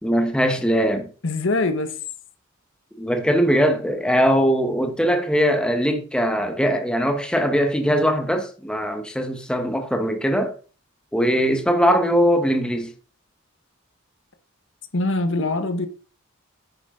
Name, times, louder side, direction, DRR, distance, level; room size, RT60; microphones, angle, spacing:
voice 1, 0.0-1.1 3.0-10.5 11.1-12.9, equal, 5° left, 1.2 m, -21 dB
voice 2, 1.2-1.9 14.9-15.9, left 2 dB, 65° left, 1.3 m, -23 dB
9.8 x 9.5 x 3.8 m
head